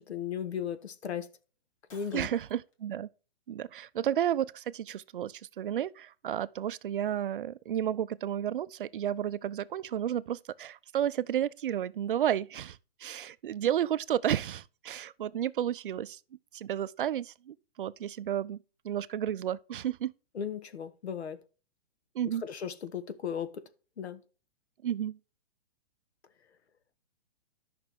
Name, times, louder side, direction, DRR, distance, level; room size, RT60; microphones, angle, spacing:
voice 1, 0.0-1.3 1.9-2.3 20.3-21.4 22.4-23.7 24.0-24.2, left 8 dB, 90° left, 1.3 m, -36 dB
Shatter, 1.9-2.7, left 4 dB, 30° left, 1.6 m, -57 dB
voice 2, 2.1-3.1 3.5-16.2 16.5-18.6 18.8-20.1 22.1-22.4 24.8-25.2, right 10 dB, 55° right, 0.5 m, -32 dB
11.5 x 6.0 x 3.5 m
hypercardioid pair, 165°, 32 cm